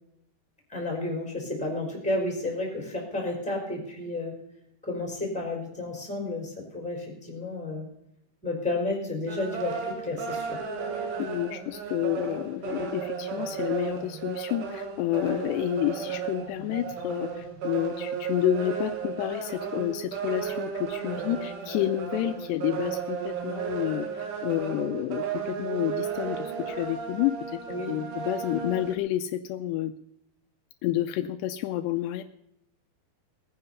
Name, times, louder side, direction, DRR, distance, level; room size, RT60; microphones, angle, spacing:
voice 1, 0.7-4.3 4.8-7.9 8.4-10.6 27.7-27.9, left 2 dB, ahead, 0 dB, 3.9 m, -31 dB
sound 1, 9.3-28.9, right 6 dB, 60° right, 2.9 m, -34 dB
voice 2, 11.2-27.6 27.9-29.9 30.8-32.2, left 13 dB, 80° left, 9 dB, 2.7 m, -29 dB
19.0 x 9.6 x 5.5 m, 0.80 s
omnidirectional pair, 5.0 m